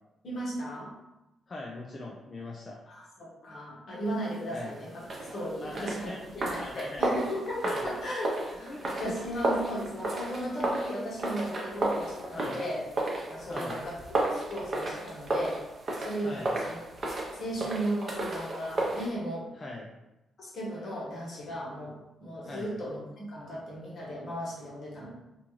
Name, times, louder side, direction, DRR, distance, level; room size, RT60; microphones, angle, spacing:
voice 1, 0.2-0.9 2.9-5.0 5.3-12.8 13.3-14.0 14.3-15.6 16.0-16.8 17.3-19.5 20.4-25.1, equal, 60° left, -4 dB, 1.0 m, -36 dB
voice 2, 1.5-2.8 4.5-4.8 5.6-7.0 7.6-7.8 8.6-9.1 12.3-12.6 13.5-13.8 16.2-16.5 19.6-19.9 22.4-22.7, left 2 dB, 40° left, -1 dB, 0.4 m, -41 dB
sound 1, 5.0-19.1, right 2 dB, 50° right, 0.7 m, -33 dB
2.6 x 2.2 x 3.1 m, 0.97 s
supercardioid pair, 50°, 0 cm